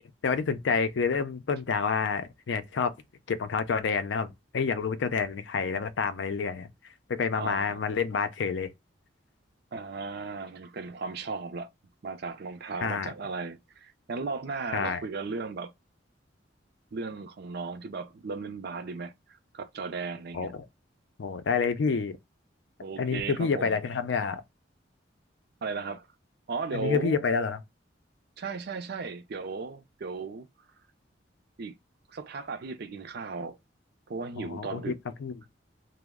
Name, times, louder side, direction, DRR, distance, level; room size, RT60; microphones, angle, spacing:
voice 1, 0.2-2.9 3.3-6.7 7.1-8.7 12.8-13.1 14.7-15.0 20.3-20.5 21.2-22.2 23.0-24.4 26.7-27.6 34.4-34.9 35.2-35.4, left 5 dB, 70° left, 0.4 m, -28 dB
voice 2, 7.4-7.8 9.7-11.7 12.0-15.7 16.9-19.1 19.5-20.5 22.8-23.7 25.6-26.1 26.5-27.2 28.4-30.5 31.6-31.8 32.1-33.6 34.1-35.0, right 4 dB, 60° right, 0.5 m, -36 dB
3.0 x 2.0 x 3.5 m
head